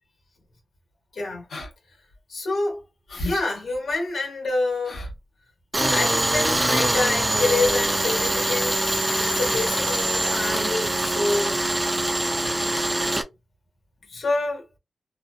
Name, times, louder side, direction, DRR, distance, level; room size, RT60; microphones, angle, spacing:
voice 1, 1.1-1.4 2.3-2.8 3.2-5.1 5.8-11.6 14.1-14.6, left 3 dB, 65° left, 1.1 m, -27 dB
sound 1, 1.5-1.7 2.1-2.2 3.1-3.4 3.7-3.8 4.8-5.2 5.8-6.0 6.3-6.4 6.6-6.9 7.6-7.7, left 1 dB, 90° left, 0.9 m, -34 dB
Tools, 5.7-13.2, right 1 dB, 15° right, 0.3 m, -23 dB
2.6 x 2.1 x 2.3 m
wide cardioid pair, 180°, 0 cm